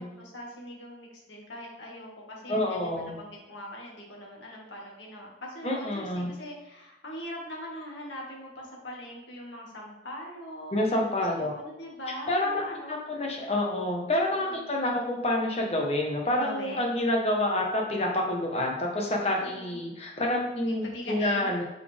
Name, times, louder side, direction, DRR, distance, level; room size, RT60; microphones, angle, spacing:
voice 1, 0.0-10.8 11.4-13.0 14.4-14.7 16.4-16.9 19.4-19.8 20.6-21.6, equal, 85° left, -2 dB, 2.0 m, -41 dB
voice 2, 2.5-3.1 5.6-6.3 10.7-11.5 12.3-12.6 12.9-21.6, left 1 dB, 35° left, 0 dB, 1.3 m, -28 dB
8.7 x 4.9 x 3.5 m, 0.99 s
head